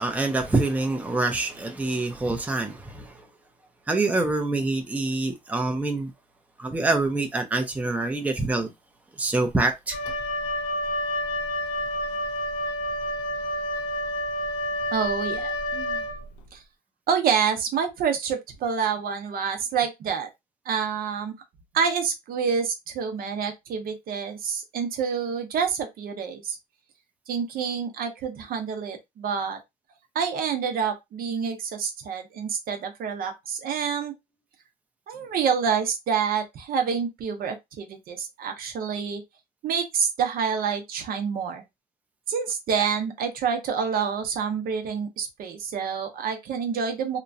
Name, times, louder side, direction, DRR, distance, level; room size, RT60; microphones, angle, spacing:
voice 1, 0.0-3.3 3.9-6.1 6.6-8.7 9.2-10.0, right 2 dB, 10° right, 0.6 m, -25 dB
Wind instrument woodwind instrument, 9.9-16.5, left 1 dB, 85° left, 0.5 m, -29 dB
voice 2, 14.9-16.0 16.5-16.6 17.1-20.3 20.7-21.3 21.7-26.6 27.3-29.6 30.1-34.1 35.1-39.2 39.6-41.6 42.3-47.2, right 6 dB, 60° right, 0.7 m, -27 dB
2.9 x 2.2 x 2.6 m
cardioid pair, 110°, 17 cm